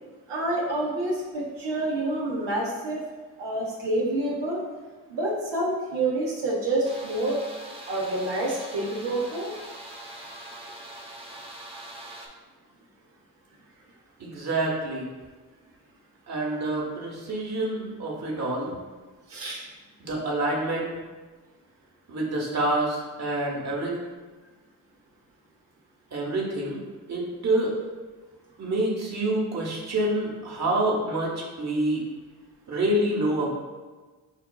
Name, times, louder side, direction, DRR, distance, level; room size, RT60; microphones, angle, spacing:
voice 1, 0.3-3.0 3.4-4.6 5.1-7.4 7.9-9.5 19.3-19.6, right 2 dB, 85° right, -4 dB, 0.8 m, -28 dB
sound 1, 6.8-12.3, right 1 dB, 15° right, 0.7 m, -42 dB
voice 2, 14.2-15.1 16.3-18.7 20.0-20.9 22.1-24.0 26.1-26.8 27.1-27.8 28.6-32.0 32.7-33.5, right 1 dB, 40° right, -3 dB, 1.1 m, -27 dB
5.7 x 2.3 x 2.2 m, 1.3 s
cardioid pair, 55°, 41 cm